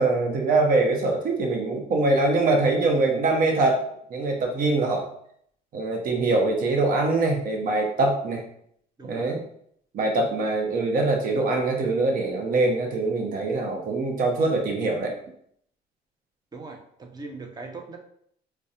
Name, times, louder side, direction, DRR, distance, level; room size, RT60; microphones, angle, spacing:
voice 1, 0.0-3.8 4.1-5.0 5.7-8.4 9.1-9.4 9.9-15.2, right 2 dB, 55° right, 2 dB, 0.9 m, -23 dB
voice 2, 9.0-9.3 16.5-18.0, right 3 dB, 25° right, 3 dB, 0.7 m, -40 dB
4.7 x 2.2 x 2.8 m, 0.68 s
cardioid pair, 110°, 17 cm